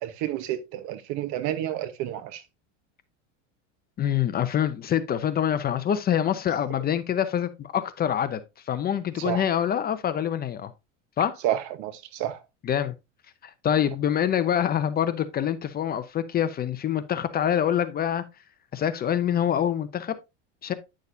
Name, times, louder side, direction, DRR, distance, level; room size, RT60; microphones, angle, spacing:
voice 1, 0.0-2.4 9.2-9.5 11.4-12.4, right 12 dB, 55° right, 1.1 m, -30 dB
voice 2, 4.0-8.4 8.7-10.7 11.2-11.4 12.6-12.9 13.4-18.2 18.7-20.2 20.6-20.7, left 9 dB, 25° left, 0.7 m, -25 dB
9.7 x 6.5 x 2.7 m
supercardioid pair, 130°, 36 cm